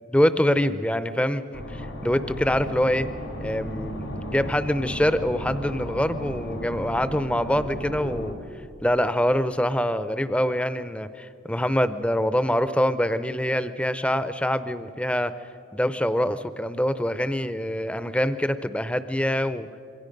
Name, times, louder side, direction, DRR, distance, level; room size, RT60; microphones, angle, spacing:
voice 1, 0.1-3.1 3.4-8.3 8.8-15.3 15.7-19.7, equal, 5° left, 12 dB, 0.5 m, -25 dB
sound 1, 1.5-8.3, equal, 85° left, 4.1 m, -35 dB
27.0 x 23.0 x 5.3 m, 2.7 s
head